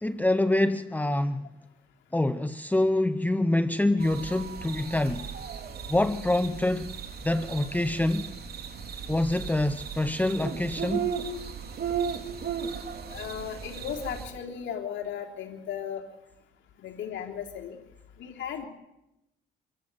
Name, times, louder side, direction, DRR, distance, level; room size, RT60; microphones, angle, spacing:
voice 1, 0.0-1.5 2.1-5.3 5.9-6.9 7.2-8.3 9.1-11.1, left 1 dB, 10° left, 1.0 m, -26 dB
sound 1, 4.0-14.2, right 7 dB, 50° right, 3.7 m, -36 dB
voice 2, 13.1-16.0 16.8-17.8 18.2-18.7, left 8 dB, 75° left, 3.5 m, -36 dB
26.5 x 23.0 x 8.2 m
cardioid pair, 90°, 20 cm